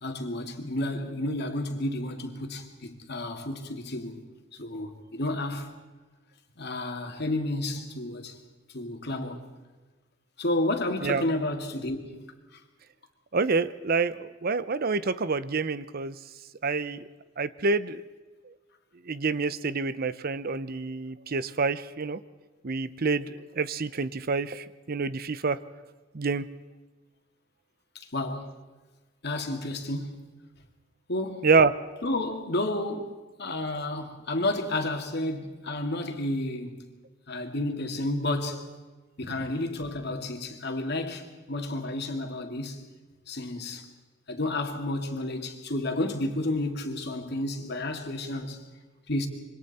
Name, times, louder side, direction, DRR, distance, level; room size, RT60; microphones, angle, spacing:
voice 1, 0.0-4.2 4.6-5.7 6.6-8.4 8.7-9.4 10.4-12.2 12.5-12.6 27.9-28.6 29.2-30.3 31.1-31.5 32.0-36.8 37.3-38.7 39.2-42.8 43.3-43.9 44.3-48.6 49.1-49.3, left 1 dB, 60° left, 2.4 m, -31 dB
voice 2, 13.3-16.2 16.6-17.0 17.4-18.0 18.5-18.6 19.1-22.2 22.6-25.6 26.1-26.4 31.4-31.7 39.2-39.5, right 4 dB, 50° right, 0.7 m, -27 dB
26.5 x 24.0 x 4.3 m
head